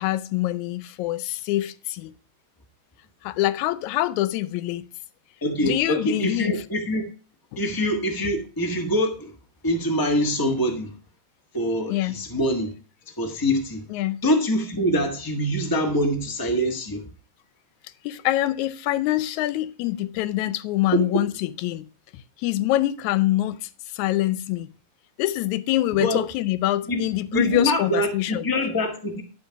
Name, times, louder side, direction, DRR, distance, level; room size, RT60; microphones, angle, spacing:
voice 1, 0.0-2.1 3.2-4.9 5.6-6.6 7.5-7.6 11.9-12.2 13.9-14.2 18.0-21.9 22.1-24.7 25.2-28.5, left 15 dB, 85° left, 2.0 m, -25 dB
voice 2, 5.4-7.1 7.6-9.3 9.6-10.9 11.5-12.7 13.2-13.8 14.2-17.1 20.9-21.2 26.0-26.2 26.9-27.0 27.3-29.2, equal, 20° left, 0.5 m, -24 dB
11.5 x 4.6 x 5.8 m
omnidirectional pair, 3.3 m